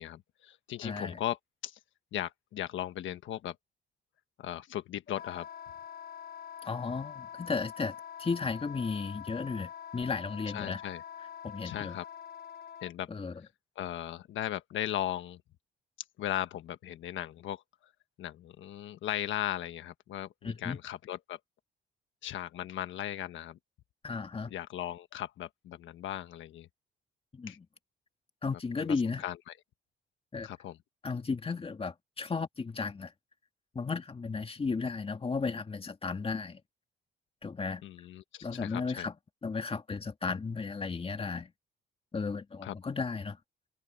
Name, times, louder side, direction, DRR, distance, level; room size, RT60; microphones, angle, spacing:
voice 1, 0.0-1.8 2.1-3.5 4.4-5.5 10.5-11.0 11.6-12.0 12.8-13.1 13.8-15.4 16.2-17.6 18.2-21.4 22.2-23.6 24.5-26.7 27.5-27.6 28.8-29.0 29.2-29.5 30.4-30.8 37.8-39.1 42.6-42.7, left 12 dB, 75° left, 1.3 m, -37 dB
voice 2, 0.8-1.2 6.6-10.8 11.2-12.0 13.1-13.5 20.4-20.8 24.0-24.5 27.3-27.7 28.4-29.2 30.3-30.5 31.0-33.1 33.8-36.6 37.4-37.8 38.4-39.1 39.4-41.5 42.1-43.4, left 4 dB, 30° left, 2.1 m, -34 dB
Wind instrument woodwind instrument, 5.1-12.9, left 9 dB, 55° left, 2.8 m, -45 dB
open air
cardioid pair, 90°, 20 cm